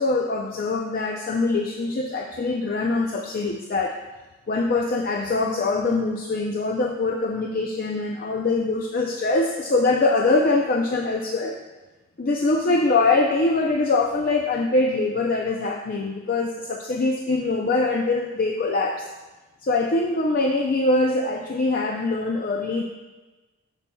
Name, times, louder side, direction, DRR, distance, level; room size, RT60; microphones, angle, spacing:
voice 1, 0.0-4.0 4.5-11.6 12.2-19.1 19.6-22.8, left 3 dB, 45° left, 1 dB, 0.5 m, -23 dB
12.5 x 5.7 x 2.3 m, 1.2 s
head